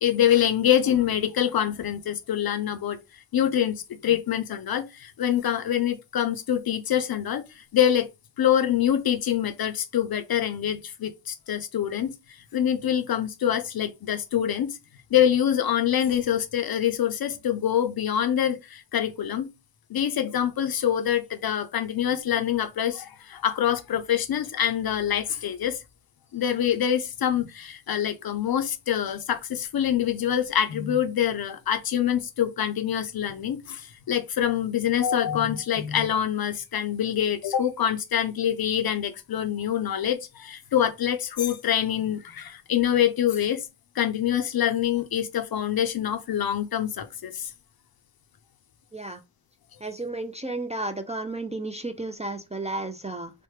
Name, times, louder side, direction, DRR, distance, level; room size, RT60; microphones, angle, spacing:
voice 1, 0.0-8.1 8.4-14.8 15.1-19.5 19.9-25.8 26.3-43.7 44.0-47.5, left 10 dB, 55° left, 0.5 m, -25 dB
voice 2, 49.8-53.3, right 2 dB, 15° right, 0.3 m, -33 dB
3.1 x 2.1 x 3.1 m
cardioid pair, 65°, 43 cm